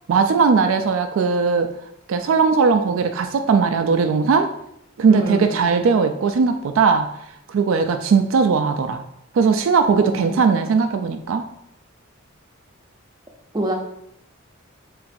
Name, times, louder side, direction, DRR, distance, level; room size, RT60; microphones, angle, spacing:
voice 1, 0.1-1.7 2.1-4.5 5.0-7.1 7.5-9.0 9.3-11.5, right 5 dB, 70° right, 7 dB, 0.3 m, -18 dB
voice 2, 5.1-5.6 10.0-10.4 13.5-13.7, right 1 dB, 20° right, 1 dB, 0.5 m, -25 dB
6.9 x 2.5 x 2.6 m, 0.76 s
head